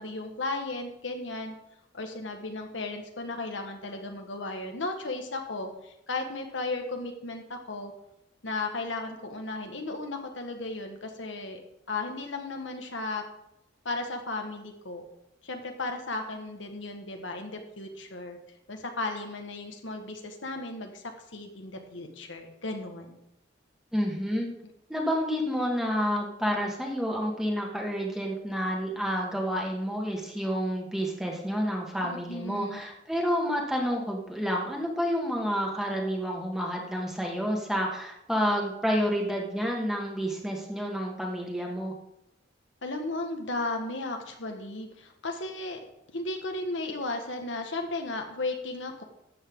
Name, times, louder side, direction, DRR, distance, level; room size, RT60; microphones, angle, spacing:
voice 1, 0.0-1.5 1.9-7.9 8.4-11.6 11.9-13.2 13.8-15.0 15.4-18.4 18.7-21.0 21.3-23.2 32.0-32.8 42.8-45.8 46.1-49.0, left 2 dB, 75° left, 4 dB, 1.5 m, -35 dB
voice 2, 23.9-24.5 24.9-41.9, equal, ahead, 0 dB, 1.8 m, -29 dB
13.0 x 8.1 x 3.8 m, 0.84 s
head